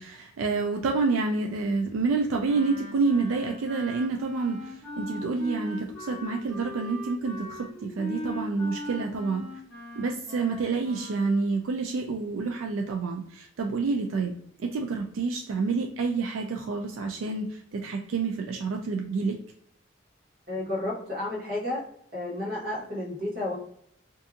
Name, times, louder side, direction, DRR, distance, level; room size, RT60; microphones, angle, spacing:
voice 1, 0.0-9.5 10.0-14.3 14.6-19.4, right 4 dB, 85° right, 3 dB, 0.3 m, -28 dB
Wind instrument woodwind instrument, 2.4-11.5, left 1 dB, ahead, 1.1 m, -40 dB
voice 2, 20.5-21.8 22.1-23.5, left 1 dB, 50° right, -5 dB, 1.3 m, -31 dB
2.6 x 2.4 x 2.5 m, 0.67 s
head